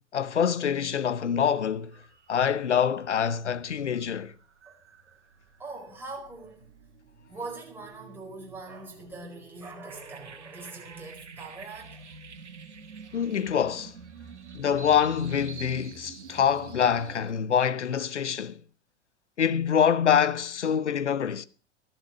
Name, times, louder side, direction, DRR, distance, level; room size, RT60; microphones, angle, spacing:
voice 1, 0.1-1.9 2.3-4.3 13.1-13.9 14.5-18.6 19.4-21.4, left 8 dB, 80° left, 0.8 m, -25 dB
sound 1, 1.3-1.5 1.8-17.3, right 6 dB, 75° right, 1.7 m, -48 dB
voice 2, 5.6-6.7 7.3-12.2, right 3 dB, 5° right, 4.6 m, -42 dB
13.5 x 11.0 x 6.1 m
figure-of-eight pair, 90°, 34 cm